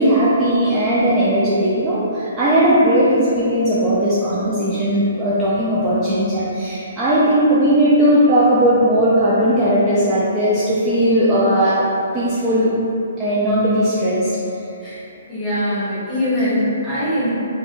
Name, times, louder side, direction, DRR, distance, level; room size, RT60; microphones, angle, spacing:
voice 1, 0.0-11.8 12.1-12.7 13.2-14.3, equal, 20° right, -10 dB, 0.4 m, -17 dB
voice 2, 15.3-17.3, equal, 10° left, -12 dB, 1.3 m, -22 dB
3.3 x 2.2 x 2.5 m, 2.7 s
hypercardioid pair, 145°, 0 cm